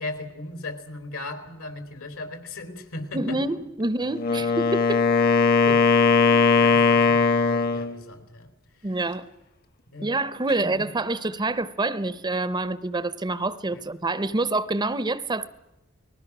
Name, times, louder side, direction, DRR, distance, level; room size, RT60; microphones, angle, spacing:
voice 1, 0.0-3.4 4.3-4.4 6.3-8.5 8.8-9.2 9.9-10.1 10.5-10.9 13.7-13.8, left 2 dB, 75° left, 3.5 m, -38 dB
voice 2, 3.1-5.0 5.7-5.8 8.8-9.3 10.0-15.5, right 2 dB, 20° right, 0.7 m, -27 dB
Wind instrument woodwind instrument, 4.1-8.0, left 4 dB, 45° left, 1.3 m, -19 dB
29.0 x 20.0 x 6.0 m
head